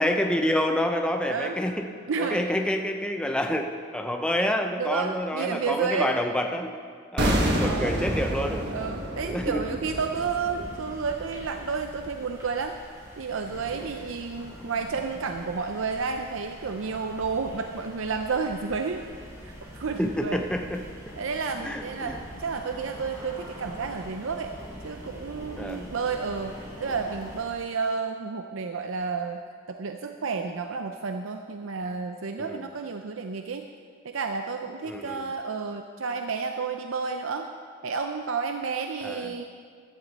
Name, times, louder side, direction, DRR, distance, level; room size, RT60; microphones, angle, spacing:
voice 1, 0.0-1.9 2.2-6.7 7.1-8.7 9.2-9.6 20.0-20.8 21.6-22.2 25.6-25.9 32.4-32.6 34.9-35.3 39.0-39.4, left 1 dB, 5° left, 4 dB, 0.6 m, -28 dB
voice 2, 2.1-2.4 4.8-6.2 7.6-8.0 8.7-12.8 13.2-19.0 19.4-19.5 19.8-20.4 21.2-24.5 24.8-29.4 29.7-33.6 34.0-37.5 37.8-39.4, right 5 dB, 75° right, 5 dB, 0.6 m, -31 dB
sound 1, 7.2-12.2 12.4-12.6, right 1 dB, 50° right, 1.4 m, -29 dB
sound 2, 9.8-27.4, equal, 15° right, 3.9 m, -44 dB
15.0 x 12.0 x 4.1 m, 2.1 s
head